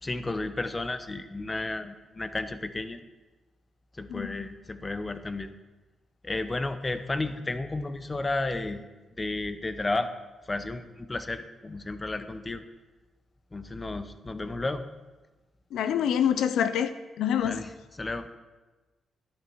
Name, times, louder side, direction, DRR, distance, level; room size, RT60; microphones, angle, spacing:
voice 1, 0.0-3.0 4.0-5.5 6.2-8.8 9.2-10.1 10.4-12.6 13.5-14.8 17.4-18.3, left 2 dB, 20° left, 10 dB, 0.8 m, -32 dB
voice 2, 15.7-16.9 17.2-17.6, left 9 dB, 85° left, 12 dB, 0.6 m, -26 dB
12.5 x 11.0 x 4.6 m, 1.2 s
cardioid pair, 100°, 0 cm